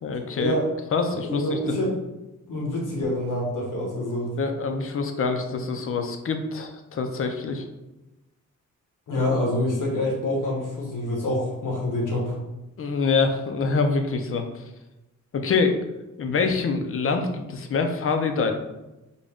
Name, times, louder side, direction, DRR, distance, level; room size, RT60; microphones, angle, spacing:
voice 1, 0.0-0.5 0.9-1.8 4.4-7.7 9.1-9.2 12.8-14.6 15.3-15.8 16.2-18.5, left 4 dB, 45° left, 5 dB, 0.5 m, -25 dB
voice 2, 1.1-1.9 2.5-4.3 9.1-12.4, left 1 dB, 80° left, -2 dB, 1.2 m, -26 dB
3.8 x 2.2 x 3.5 m, 0.99 s
wide cardioid pair, 110°, 31 cm